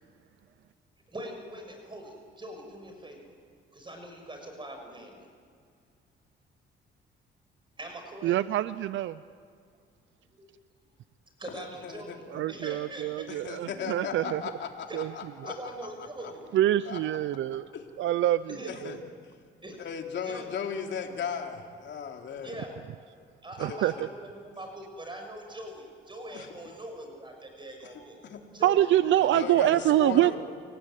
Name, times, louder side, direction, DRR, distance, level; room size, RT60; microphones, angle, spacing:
voice 1, 1.1-3.3 3.7-5.3 7.8-8.4 10.3-10.5 11.4-12.2 12.5-13.3 14.9-15.0 15.4-16.4 18.5-18.7 19.6-19.8 20.2-20.5 22.4-22.7 23.4-28.2 28.5-28.8, right 1 dB, 25° right, 3 dB, 6.6 m, -42 dB
voice 2, 8.2-9.2 12.3-14.4 14.9-15.1 16.5-17.7 18.0-18.6 18.8-18.9 23.6-23.9 28.6-30.4, right 13 dB, 75° right, 15 dB, 0.6 m, -25 dB
voice 3, 11.5-12.4 13.3-15.7 16.2-16.3 16.9-17.0 17.7-17.9 18.7-19.0 19.8-22.6 23.1-23.3 23.6-23.8 26.3-26.5 27.8-27.9 28.2-28.7 29.2-30.4, left 7 dB, 65° left, 3 dB, 3.4 m, -37 dB
29.5 x 18.0 x 9.3 m, 2.2 s
cardioid pair, 90°, 20 cm